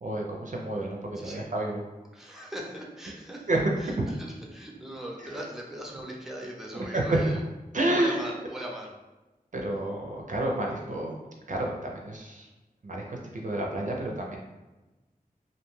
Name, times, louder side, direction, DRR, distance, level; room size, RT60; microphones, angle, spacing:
voice 1, 0.0-1.8 3.5-3.6 6.7-7.2 7.7-8.3 9.5-11.2 11.5-12.5 12.8-14.4, right 1 dB, 55° right, 0 dB, 0.4 m, -29 dB
voice 2, 1.1-1.5 2.1-7.4 7.9-8.9, right 1 dB, ahead, -1 dB, 0.5 m, -40 dB
2.4 x 2.2 x 3.1 m, 1.1 s
wide cardioid pair, 60°, 15 cm